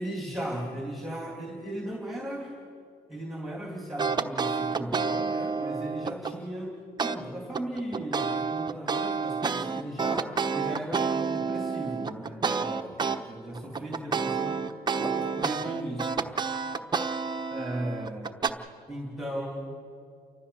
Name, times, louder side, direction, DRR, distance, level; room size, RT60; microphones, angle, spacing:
voice 1, 0.0-2.6 3.1-11.1 11.3-14.7 15.0-16.3 17.5-18.3 18.9-19.8, right 1 dB, ahead, 0 dB, 2.9 m, -37 dB
sound 1, 4.0-6.3 7.0-7.2 7.5-13.2 13.5-18.5, right 5 dB, 25° right, 1.0 m, -29 dB
30.0 x 14.0 x 6.9 m, 2.3 s
cardioid pair, 110°, 17 cm